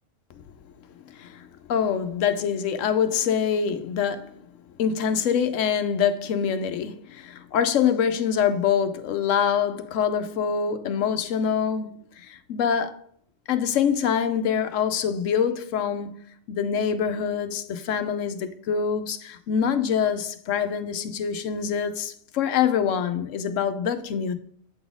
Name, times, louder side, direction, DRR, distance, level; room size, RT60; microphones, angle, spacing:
voice 1, 1.1-4.3 4.8-13.0 13.5-16.1 16.5-24.3, left 7 dB, 85° left, 1.0 m, -25 dB
7.9 x 4.1 x 3.5 m
omnidirectional pair, 1.3 m